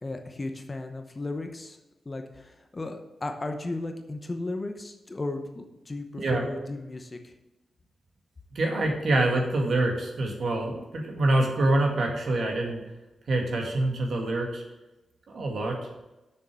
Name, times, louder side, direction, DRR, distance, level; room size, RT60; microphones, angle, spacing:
voice 1, 0.0-1.8 2.0-7.3, left 2 dB, 20° left, 5 dB, 0.8 m, -35 dB
voice 2, 8.5-12.8 13.3-14.6 15.3-15.8, right 2 dB, 55° right, 1 dB, 2.1 m, -26 dB
7.0 x 6.5 x 7.7 m, 1.0 s
wide cardioid pair, 170°, 0 cm